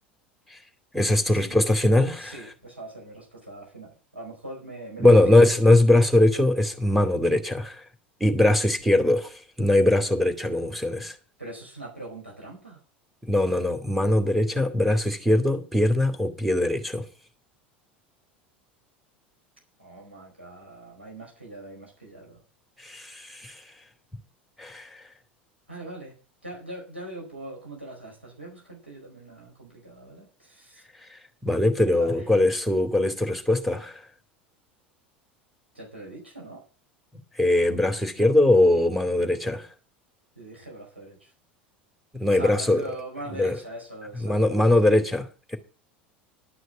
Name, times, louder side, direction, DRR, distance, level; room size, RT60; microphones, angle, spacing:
voice 1, 0.9-2.4 5.0-7.8 8.2-11.1 13.2-17.0 22.8-23.5 24.6-25.0 31.4-34.0 37.4-39.7 42.1-42.8 43.3-43.6 44.2-45.3, left 1 dB, ahead, 2.6 m, -21 dB
voice 2, 2.2-5.5 11.4-12.8 19.8-22.4 25.7-26.1 26.4-30.8 31.9-32.1 35.7-36.6 40.4-41.2 42.4-44.5, right 2 dB, 90° right, 4.7 m, -41 dB
12.0 x 6.3 x 8.2 m
figure-of-eight pair, 75°, 6 cm